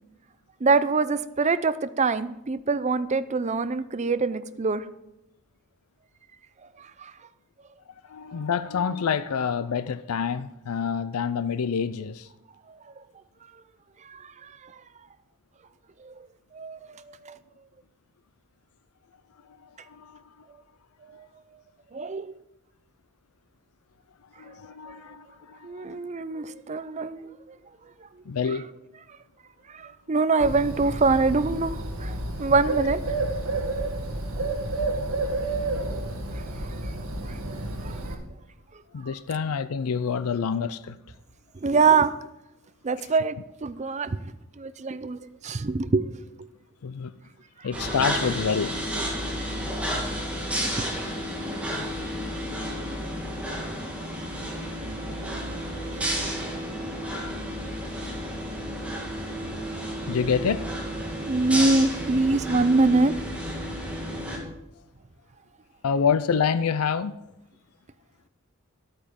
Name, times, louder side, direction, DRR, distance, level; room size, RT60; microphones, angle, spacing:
voice 1, 0.6-4.8 6.8-7.1 14.0-14.7 16.0-16.1 16.5-17.4 21.1-21.3 21.9-22.3 25.6-27.6 29.7-33.0 36.4-36.5 36.7-36.8 37.3-37.6 37.8-38.0 41.5-42.1 42.8-44.2 44.6-46.1 47.6-47.7 50.6-50.7 60.0-60.2 61.3-63.1, right 3 dB, 30° right, 0.5 m, -25 dB
voice 2, 7.9-12.3 19.6-20.2 24.4-26.1 28.3-28.7 38.9-41.0 43.0-43.1 46.8-47.1 47.6-48.8 57.1-57.4 60.1-60.6 61.5-61.7 65.8-67.2, left 6 dB, 80° left, 0.5 m, -27 dB
Bird, 30.4-38.2, right 2 dB, 70° right, 1.9 m, -30 dB
sound 1, 47.7-64.4, equal, 5° right, 2.2 m, -31 dB
12.0 x 8.7 x 5.2 m
head